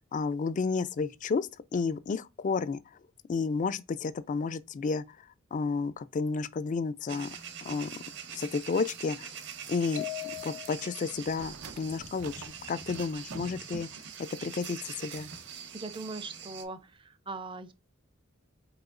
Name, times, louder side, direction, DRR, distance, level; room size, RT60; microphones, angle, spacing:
voice 1, 0.1-2.8 3.3-5.2 5.5-7.4 7.6-8.0 8.3-9.3 9.7-10.1 10.4-13.9 14.4-15.3, left 4 dB, 35° left, 0.3 m, -31 dB
sound 1, 7.1-16.6, right 7 dB, 55° right, 0.8 m, -43 dB
sound 2, 10.0-11.1, left 18 dB, 85° left, 0.8 m, -39 dB
sound 3, 11.1-14.1 14.8-15.8 16.1-16.2, right 4 dB, 90° right, 0.6 m, -48 dB
voice 2, 15.7-17.7, right 3 dB, 25° right, 0.5 m, -40 dB
4.8 x 4.2 x 2.4 m
head